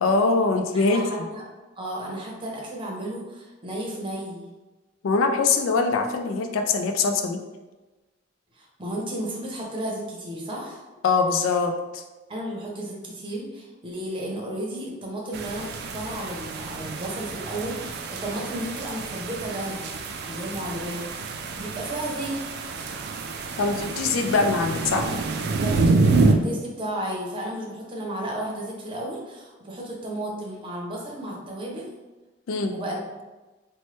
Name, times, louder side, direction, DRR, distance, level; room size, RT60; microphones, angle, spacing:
voice 1, 0.0-1.0 5.0-7.4 11.0-12.0 23.6-25.1 32.5-32.7, left 4 dB, 85° left, 5 dB, 0.4 m, -23 dB
voice 2, 0.7-1.4 1.8-4.4 8.5-10.8 12.3-19.9 20.2-22.4 22.7-22.8 25.6-31.9 32.7-33.0, right 1 dB, 25° right, -2 dB, 0.7 m, -33 dB
sound 1, 15.3-26.3, right 3 dB, 55° right, 0.3 m, -27 dB
3.0 x 2.1 x 3.0 m, 1.2 s
head